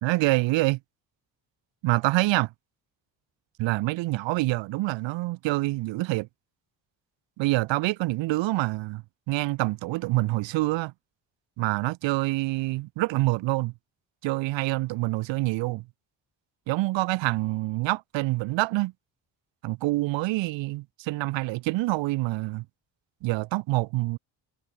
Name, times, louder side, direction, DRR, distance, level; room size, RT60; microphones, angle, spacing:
voice 1, 0.0-0.8 1.8-2.5 3.6-6.3 7.4-10.9 11.6-13.7 14.2-15.8 16.7-18.9 19.6-22.6 23.2-24.2, right 20 dB, 85° right, 0.6 m, -26 dB
supercardioid pair, 65°, 44 cm